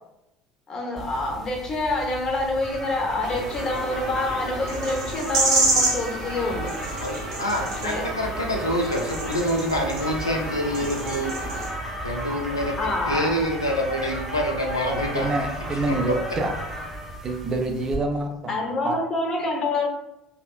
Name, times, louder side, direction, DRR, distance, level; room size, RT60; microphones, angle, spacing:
voice 1, 0.7-6.7 7.8-8.0 12.8-13.3 18.5-19.9, left 2 dB, 30° left, 1 dB, 0.6 m, -27 dB
sound 1, 1.0-18.0, right 1 dB, 5° right, 0.8 m, -34 dB
sound 2, 3.2-11.7, right 2 dB, 70° right, 0.6 m, -29 dB
voice 2, 7.0-11.4 12.0-15.3 15.9-16.2, equal, 85° left, 0 dB, 0.3 m, -26 dB
voice 3, 14.9-16.5 17.2-19.0, right 2 dB, 30° right, 4 dB, 0.4 m, -27 dB
2.7 x 2.4 x 2.3 m, 0.88 s
figure-of-eight pair, 65°, 2 cm